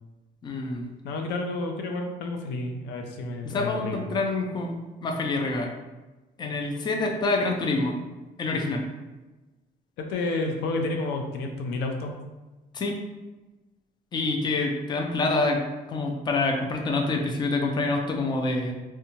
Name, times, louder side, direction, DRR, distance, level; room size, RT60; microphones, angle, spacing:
voice 1, 0.4-0.8 3.5-5.7 6.4-8.0 8.4-8.8 12.7-13.0 14.1-15.6 15.9-18.7, left 2 dB, 25° left, 2 dB, 0.4 m, -26 dB
voice 2, 1.0-4.1 10.0-12.1, left 2 dB, 85° left, 3 dB, 0.4 m, -30 dB
2.6 x 2.2 x 2.9 m, 1.1 s
cardioid pair, 110°, 17 cm